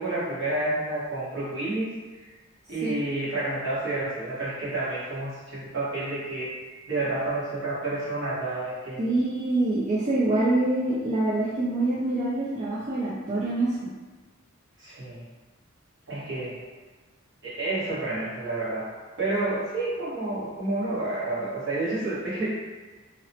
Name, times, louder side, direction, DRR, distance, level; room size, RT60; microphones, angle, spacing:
voice 1, 0.0-2.3 2.7-6.6 6.9-9.0 14.8-15.2 16.1-16.6 17.4-18.9 19.2-22.5, right 2 dB, 60° right, -9 dB, 1.1 m, -30 dB
voice 2, 9.0-13.9, right 2 dB, 35° right, -8 dB, 0.4 m, -25 dB
2.8 x 2.0 x 2.7 m, 1.3 s
head